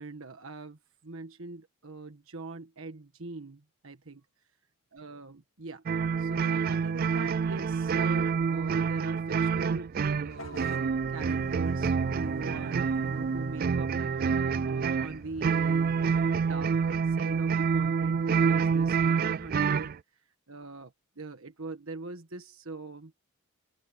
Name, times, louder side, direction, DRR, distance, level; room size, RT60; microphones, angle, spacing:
voice 1, 0.0-4.2 4.9-5.8 6.2-10.0 10.2-19.9 20.5-23.1, right 3 dB, 65° right, 1.5 m, -42 dB
sound 1, 5.9-20.0, right 5 dB, 40° right, 0.3 m, -27 dB
Vehicle horn car horn honking / Bus, 10.3-16.4, left 2 dB, 60° left, 2.2 m, -48 dB
open air
head